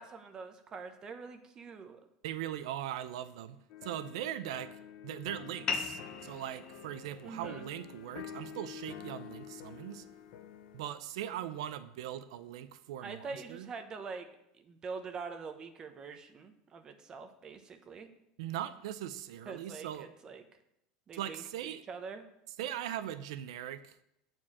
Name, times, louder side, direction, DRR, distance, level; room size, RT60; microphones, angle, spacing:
voice 1, 0.0-2.0 7.2-7.7 13.0-14.3 14.5-18.1 19.5-20.4 21.1-22.2, right 5 dB, 25° right, 7 dB, 0.9 m, -44 dB
voice 2, 2.2-4.7 5.0-10.0 10.7-13.7 18.4-20.1 21.1-21.8 22.6-23.9, right 11 dB, 85° right, 12 dB, 0.6 m, -40 dB
sound 1, 3.7-10.9, left 8 dB, 55° left, 0.9 m, -48 dB
sound 2, 5.7-10.7, left 5 dB, 25° left, 0.7 m, -42 dB
8.7 x 4.6 x 7.3 m, 0.80 s
supercardioid pair, 155°, 3 cm